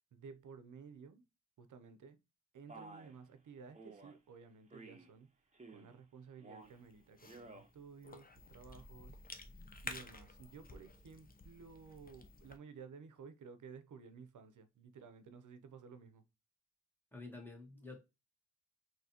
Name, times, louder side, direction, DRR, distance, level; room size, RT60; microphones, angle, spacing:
voice 1, 0.1-1.2 1.6-2.2 2.5-5.3 5.7-9.2 9.8-16.2, right 5 dB, 75° right, 0.7 m, -55 dB
Male speech man speaking, 2.7-3.2 3.7-4.1 4.7-5.1 5.5-6.0 6.4-6.8 7.2-7.7, right 3 dB, 25° right, 0.9 m, -54 dB
Cough / Chewing mastication, 6.6-12.6, left 3 dB, 30° left, 0.7 m, -52 dB
voice 2, 17.1-18.0, left 3 dB, 5° left, 1.6 m, -49 dB
3.8 x 2.8 x 2.8 m
cardioid pair, 60°, 31 cm